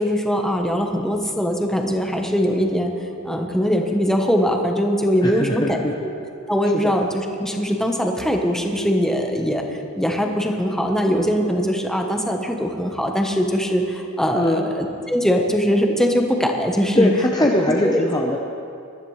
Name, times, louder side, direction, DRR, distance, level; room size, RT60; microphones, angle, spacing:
voice 1, 0.0-2.9 3.2-6.1 6.5-17.1 17.4-17.5 17.8-18.0, equal, ahead, 2 dB, 1.0 m, -21 dB
voice 2, 5.2-5.9 6.7-6.9 14.3-14.7 16.9-18.4, left 1 dB, 20° left, 0 dB, 0.7 m, -21 dB
22.0 x 13.0 x 3.2 m, 2.5 s
head